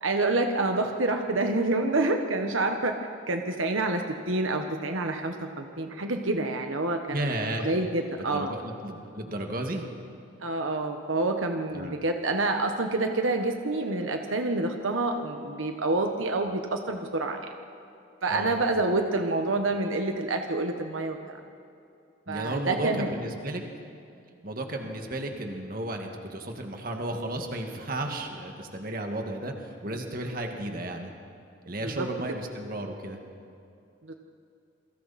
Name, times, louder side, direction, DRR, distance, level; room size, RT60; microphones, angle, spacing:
voice 1, 0.0-2.9 3.3-7.3 7.6-8.6 10.4-17.5 18.2-21.4 22.3-23.1 31.8-32.1 34.0-34.1, right 2 dB, 85° right, 5 dB, 1.3 m, -27 dB
voice 2, 7.1-7.7 8.2-9.8 11.7-12.0 18.3-18.6 22.3-23.6 24.4-31.1 31.6-33.2, right 1 dB, 45° right, 3 dB, 2.0 m, -33 dB
28.0 x 23.5 x 4.3 m, 2.6 s
head